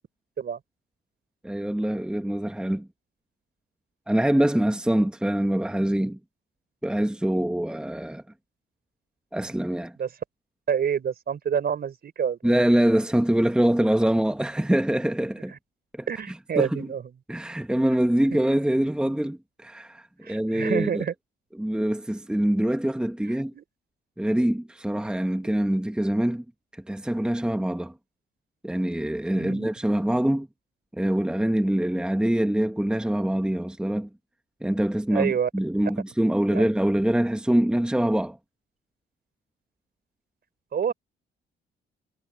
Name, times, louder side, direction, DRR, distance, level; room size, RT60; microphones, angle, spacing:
voice 1, 1.4-2.9 4.1-6.2 6.8-8.2 9.3-10.0 12.4-15.5 15.9-16.9 17.3-21.0 21.5-23.5 24.2-26.4 26.7-27.9 28.6-30.5 30.9-34.1 34.6-38.4, right 1 dB, 5° right, 1.3 m, -24 dB
voice 2, 10.7-12.5 16.1-17.0 18.3-18.4 20.3-21.1 23.5-23.6 29.3-29.7 35.1-35.5 36.5-36.7 40.7-40.9, right 7 dB, 55° right, 4.6 m, -27 dB
cardioid pair, 90°, 20 cm